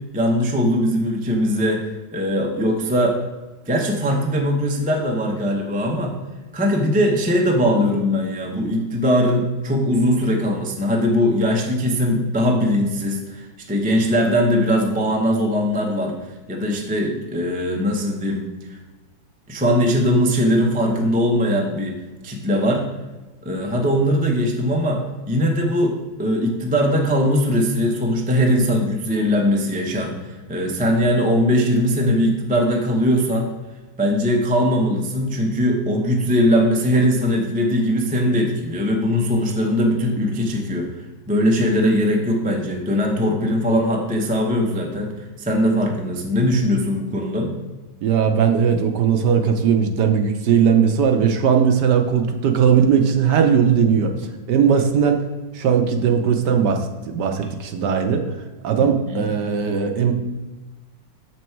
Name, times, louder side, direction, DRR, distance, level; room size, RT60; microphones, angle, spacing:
voice 1, 0.1-1.8 2.1-3.2 3.7-6.1 6.5-16.1 16.5-18.4 18.7-18.8 19.5-22.0 22.2-22.8 23.4-25.0 25.3-33.5 34.0-40.9 41.3-47.5 59.1-59.2, equal, 10° right, 0 dB, 0.4 m, -20 dB
voice 2, 48.0-55.2 55.5-58.2 58.6-60.1, right 7 dB, 65° right, 5 dB, 1.2 m, -18 dB
7.0 x 6.2 x 4.5 m, 1.2 s
omnidirectional pair, 2.1 m